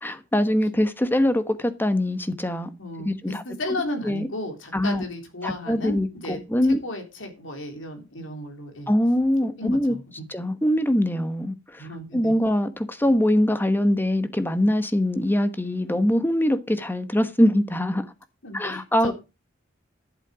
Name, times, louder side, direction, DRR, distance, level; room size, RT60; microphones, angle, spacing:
voice 1, 0.0-2.7 3.0-3.4 4.0-4.3 4.7-5.0 5.4-6.8 8.9-10.0 10.3-11.9 12.1-18.0 18.5-19.1, left 1 dB, 10° left, 1.1 m, -23 dB
voice 2, 2.8-6.4 6.8-8.9 9.6-10.3 11.8-12.3 18.4-19.1, left 1 dB, 70° left, 3.7 m, -34 dB
11.5 x 7.6 x 5.0 m
head